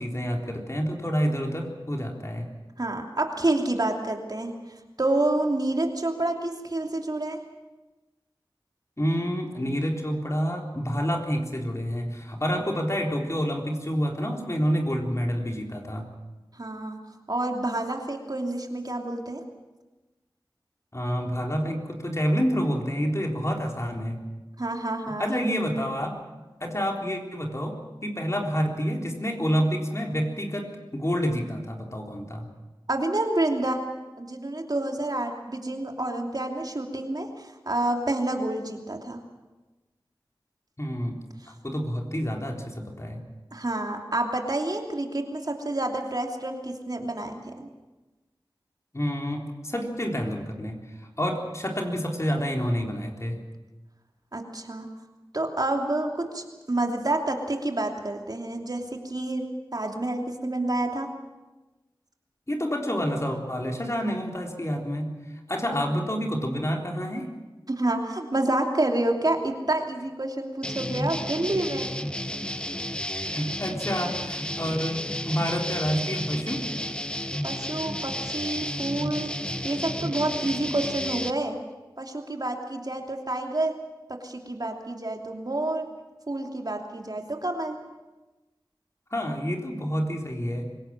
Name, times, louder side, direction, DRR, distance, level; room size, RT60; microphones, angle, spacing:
voice 1, 0.0-2.5 9.0-16.1 20.9-24.2 25.2-26.2 26.6-27.8 28.0-32.5 40.8-41.2 41.6-43.2 48.9-53.4 62.5-65.1 65.5-67.3 73.1-76.6 89.1-90.7, equal, 35° left, 1 dB, 3.8 m, -28 dB
voice 2, 2.8-4.5 5.0-7.4 16.6-17.0 17.3-19.4 24.6-25.3 32.9-33.8 34.2-39.2 43.5-47.7 54.3-54.9 55.3-61.1 67.7-71.9 77.4-79.3 79.6-81.6 82.0-83.8 84.1-85.9 86.3-87.8, right 2 dB, 50° right, 3 dB, 2.9 m, -28 dB
sound 1, 70.6-81.3, left 1 dB, 10° left, 1.2 m, -32 dB
25.0 x 17.0 x 7.5 m, 1.1 s
wide cardioid pair, 45°, 8 cm